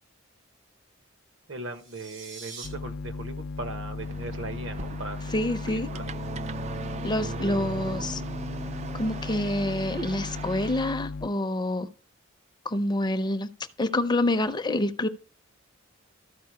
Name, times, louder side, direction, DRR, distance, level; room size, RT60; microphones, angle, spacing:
voice 1, 1.5-6.1, right 2 dB, 65° right, 1.2 m, -39 dB
sound 1, 1.6-2.7, right 5 dB, 80° right, 3.2 m, -43 dB
sound 2, 2.6-11.3, left 3 dB, 75° left, 0.4 m, -36 dB
sound 3, 4.0-10.9, right 4 dB, 30° right, 0.3 m, -39 dB
voice 2, 5.3-5.9 7.0-8.2 8.9-11.9 12.7-13.5 13.8-15.1, left 1 dB, 20° left, 0.5 m, -27 dB
13.5 x 4.8 x 4.7 m
head